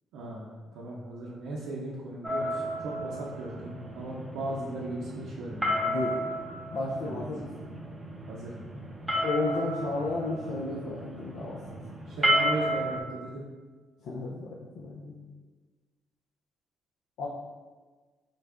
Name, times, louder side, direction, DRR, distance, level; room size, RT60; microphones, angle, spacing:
voice 1, 0.1-0.5 0.7-5.7 7.0-7.2 8.3-8.6 12.1-13.5, right 2 dB, 90° right, -5 dB, 0.5 m, -37 dB
sound 1, 2.2-13.0, equal, 20° right, 0.7 m, -32 dB
voice 2, 5.8-6.2 6.7-7.4 9.2-11.6 14.0-15.2 17.2-17.3, left 2 dB, 85° left, -4 dB, 0.4 m, -33 dB
3.9 x 2.1 x 3.4 m, 1.4 s
cardioid pair, 90°, 0 cm